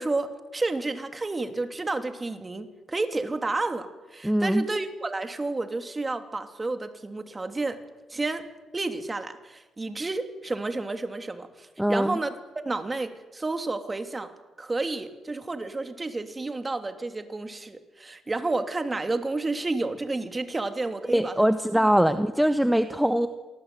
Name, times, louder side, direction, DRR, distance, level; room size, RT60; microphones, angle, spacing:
voice 1, 0.0-7.8 8.1-8.5 8.7-12.4 12.6-14.3 14.6-21.3, right 3 dB, 20° right, 8 dB, 3.0 m, -31 dB
voice 2, 4.2-4.6 11.8-12.2 21.1-23.3, equal, 5° right, 9 dB, 1.2 m, -22 dB
27.0 x 19.0 x 9.3 m, 1.1 s
cardioid pair, 90°, 0 cm